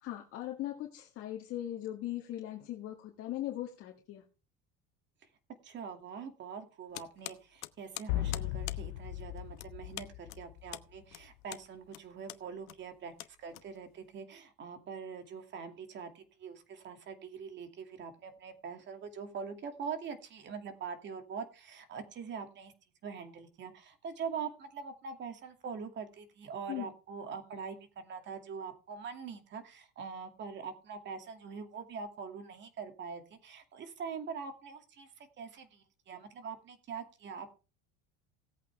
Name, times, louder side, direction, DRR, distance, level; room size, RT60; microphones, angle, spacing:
voice 1, 0.0-4.2 26.7-26.9, left 13 dB, 50° left, 1 dB, 1.8 m, -39 dB
voice 2, 5.6-13.1 13.4-22.7 23.0-37.5, right 6 dB, 40° right, 6 dB, 2.4 m, -43 dB
sound 1, 6.9-14.1, left 19 dB, 65° left, 1.0 m, -47 dB
sound 2, 8.1-11.0, left 14 dB, 90° left, 1.0 m, -37 dB
18.0 x 8.4 x 3.5 m, 0.33 s
cardioid pair, 145°, 30 cm